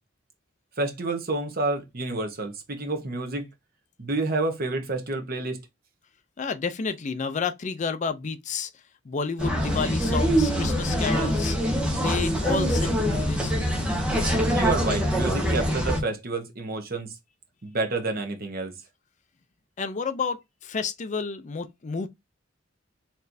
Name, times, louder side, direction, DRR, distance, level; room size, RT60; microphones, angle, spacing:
voice 1, 0.8-3.5 4.0-5.6 14.5-17.1 17.6-18.7, right 2 dB, 50° right, 1.1 m, -29 dB
voice 2, 6.4-8.7 9.1-11.6 11.9-13.9 19.8-22.1, left 5 dB, 40° left, 0.4 m, -30 dB
sound 1, 9.4-16.0, equal, 5° right, 1.1 m, -24 dB
4.3 x 3.1 x 2.6 m
head